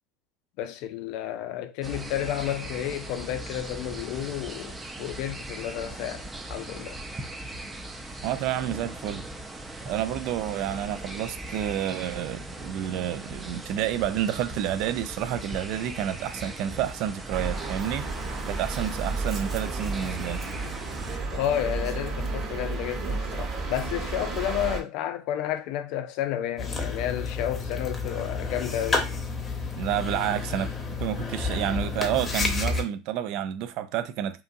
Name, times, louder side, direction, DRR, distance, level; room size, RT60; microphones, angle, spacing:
voice 1, 0.6-7.0 21.3-29.1, left 11 dB, 60° left, 0.4 m, -31 dB
sound 1, 1.8-21.2, right 1 dB, 15° right, 0.6 m, -39 dB
voice 2, 8.2-9.3 9.9-18.1 18.5-20.4 29.8-30.7 31.0-34.4, right 11 dB, 60° right, 0.4 m, -29 dB
sound 2, 17.3-24.8, right 3 dB, 40° right, 1.0 m, -32 dB
sound 3, 26.6-32.8, left 4 dB, 25° left, 0.8 m, -30 dB
2.7 x 2.6 x 2.5 m
hypercardioid pair, 80°, 0 cm